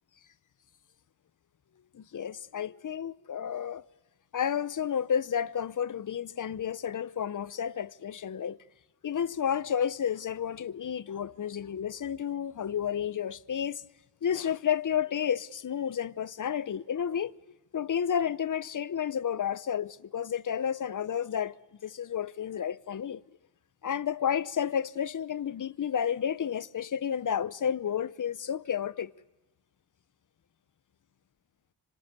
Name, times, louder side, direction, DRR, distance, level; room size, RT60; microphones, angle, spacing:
voice 1, 1.9-3.8 4.3-8.6 9.0-13.8 14.2-17.3 17.7-21.6 21.8-23.2 23.8-29.1, left 8 dB, 45° left, 0.8 m, -31 dB
26.5 x 25.0 x 8.2 m
cardioid pair, 60°, 43 cm